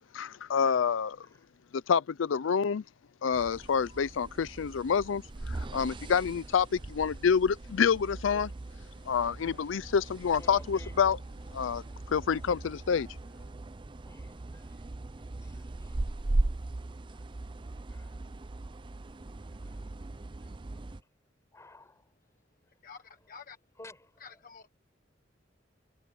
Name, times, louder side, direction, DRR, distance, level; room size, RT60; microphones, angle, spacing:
voice 1, 0.1-1.3 1.7-2.8 3.2-8.5 9.1-11.2 11.5-13.1, left 6 dB, 90° left, 0.5 m, -28 dB
voice 2, 1.2-1.8 8.3-8.6 9.3-11.0 11.4-12.0 14.0-14.9 15.2-16.4 16.7-17.3 17.6-18.2 19.6-19.8 20.3-21.1 21.5-22.8 23.8-24.4, left 1 dB, 15° left, 6.3 m, -56 dB
sound 1, 3.3-21.0, right 2 dB, 25° right, 0.5 m, -38 dB
voice 3, 22.8-23.6 24.2-24.7, left 5 dB, 50° left, 1.3 m, -49 dB
head